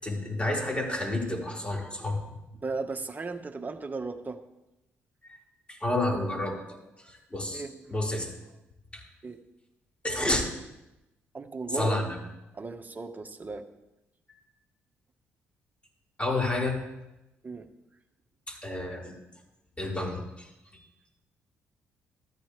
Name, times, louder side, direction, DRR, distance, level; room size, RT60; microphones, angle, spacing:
voice 1, 0.0-2.2 5.3-5.4 5.7-6.8 7.0-7.6 7.9-8.3 8.9-9.0 10.0-10.4 11.7-12.2 14.3-14.4 16.2-16.8 18.5-19.1 19.8-20.9, left 2 dB, 20° left, -2 dB, 5.2 m, -30 dB
voice 2, 2.6-4.4 7.5-7.9 9.2-9.4 11.3-11.9 12.5-13.6 17.4-17.7, right 3 dB, 30° right, 5 dB, 1.6 m, -36 dB
14.0 x 13.5 x 3.5 m, 0.95 s
hypercardioid pair, 45°, 6 cm